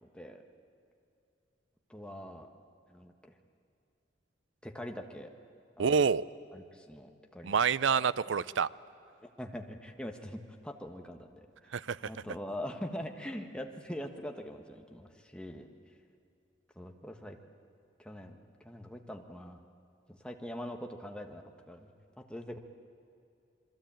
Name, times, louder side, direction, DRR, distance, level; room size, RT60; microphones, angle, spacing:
voice 1, 0.0-0.4 1.9-2.5 2.9-3.1 4.6-5.3 5.8-6.0 6.5-7.6 7.9-8.1 9.2-11.5 12.0-15.7 16.7-17.4 18.0-18.4 18.6-19.6 20.1-21.9 22.2-22.6, equal, 5° left, 4 dB, 1.5 m, -43 dB
voice 2, 5.8-6.3 7.4-8.7 11.7-12.0, right 6 dB, 85° right, 19 dB, 0.5 m, -27 dB
27.0 x 22.5 x 8.9 m, 2.6 s
head